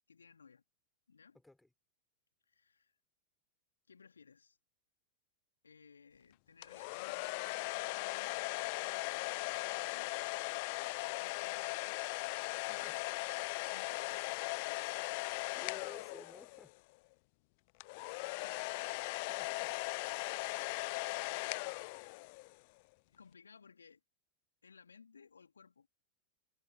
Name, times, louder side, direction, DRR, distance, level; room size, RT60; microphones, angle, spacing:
voice 1, 0.1-0.6 1.1-1.4 2.5-2.9 3.9-4.6 5.6-7.3 7.8-8.4 9.7-10.2 10.8-12.0 12.5-13.1 13.7-14.8 23.1-24.0 24.6-25.9, left 5 dB, 75° left, 3.2 m, -61 dB
voice 2, 1.3-1.7 12.7-13.0 15.5-16.7 19.3-19.8, left 2 dB, 5° left, 4.7 m, -56 dB
sound 1, 6.6-16.7 17.8-22.5, left 28 dB, 45° left, 0.5 m, -39 dB
figure-of-eight pair, 90°, 0 cm